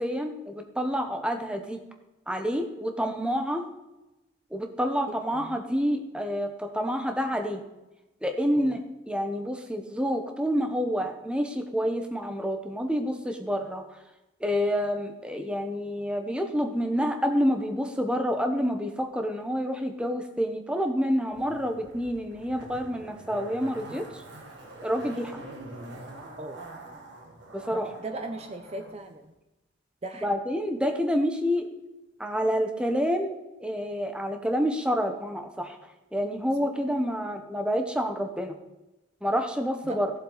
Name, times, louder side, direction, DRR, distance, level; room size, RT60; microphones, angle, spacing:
voice 1, 0.0-1.8 2.3-3.6 4.5-7.6 8.2-8.8 9.1-13.8 14.4-24.0 24.8-25.4 27.5-27.9 30.2-31.7 32.2-33.3 33.6-35.8 36.1-38.6 39.2-40.1, equal, 5° right, 5 dB, 0.9 m, -28 dB
voice 2, 5.1-5.6 8.6-8.8 26.4-26.6 27.7-29.3 30.0-30.4 36.6-36.7 39.8-40.0, right 2 dB, 30° right, 6 dB, 0.7 m, -38 dB
Zipper (clothing), 21.3-28.9 29.2-29.3, right 2 dB, 60° right, 2.2 m, -45 dB
16.5 x 7.5 x 4.0 m, 1.0 s
head